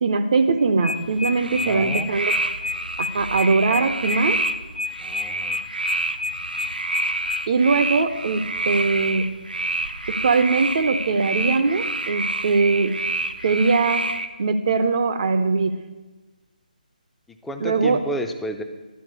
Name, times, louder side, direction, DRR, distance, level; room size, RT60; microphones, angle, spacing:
voice 1, 0.0-2.4 3.0-4.4 7.5-9.3 10.1-12.9 13.4-14.1 14.4-15.8 17.6-18.0, right 4 dB, 45° right, 9 dB, 0.6 m, -21 dB
sound 1, 0.6-7.4, left 3 dB, 85° left, 0.5 m, -29 dB
sound 2, 1.0-14.3, right 2 dB, 85° right, 0.7 m, -28 dB
voice 2, 1.4-2.1 5.0-5.6 17.3-18.6, equal, 5° left, 6 dB, 0.4 m, -32 dB
11.0 x 4.4 x 7.9 m, 1.2 s
figure-of-eight pair, 150°, 5 cm